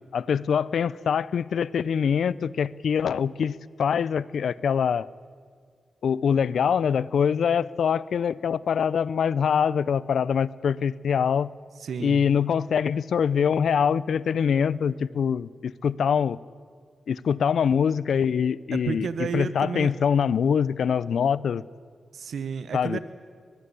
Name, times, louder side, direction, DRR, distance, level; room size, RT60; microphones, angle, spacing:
voice 1, 0.1-5.1 6.0-11.5 12.0-16.4 17.1-19.1 19.3-21.6 22.7-23.0, left 7 dB, 80° left, 19 dB, 0.6 m, -24 dB
voice 2, 11.8-12.2 18.7-19.9 22.1-23.0, right 6 dB, 80° right, 12 dB, 1.0 m, -31 dB
22.0 x 21.0 x 8.3 m, 2.1 s
cardioid pair, 50°, 0 cm